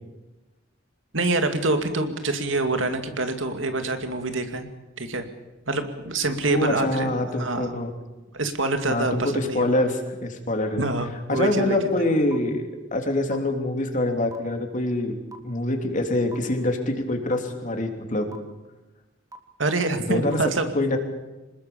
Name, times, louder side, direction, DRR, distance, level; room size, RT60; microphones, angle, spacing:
voice 1, 1.1-4.7 5.0-5.2 5.7-7.7 8.3-9.7 10.8-11.9 19.6-20.7, right 2 dB, 85° right, 7 dB, 2.5 m, -26 dB
voice 2, 6.5-7.9 8.8-10.8 11.3-15.2 15.4-18.3 20.1-20.4 20.7-21.0, left 1 dB, 40° left, 4 dB, 3.2 m, -25 dB
sound 1, 11.3-11.4 12.3-12.4 13.3-13.4 14.3-14.4 15.3-15.4 16.3-16.4 17.3-17.4 18.3-18.4 19.3-19.4 20.3-20.4, right 2 dB, 20° right, 2.1 m, -40 dB
26.0 x 20.5 x 7.1 m, 1.1 s
head